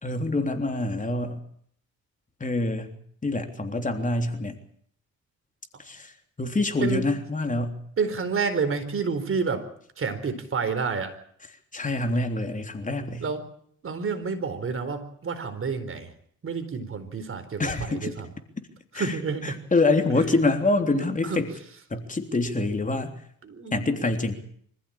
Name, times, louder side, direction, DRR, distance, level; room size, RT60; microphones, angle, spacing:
voice 1, 0.0-1.4 2.4-2.9 3.2-4.6 5.8-6.1 6.4-7.8 11.7-13.2 17.6-18.1 18.9-19.2 19.4-21.5 21.9-23.1 23.7-24.3, left 2 dB, 25° left, 5 dB, 3.5 m, -26 dB
voice 2, 8.0-9.6 10.0-11.2 13.2-13.4 13.8-16.1 16.4-18.3 18.9-19.7 20.9-21.4 23.4-23.9, right 5 dB, 45° right, 10 dB, 4.2 m, -29 dB
25.5 x 15.0 x 8.8 m, 0.64 s
cardioid pair, 90°, 30 cm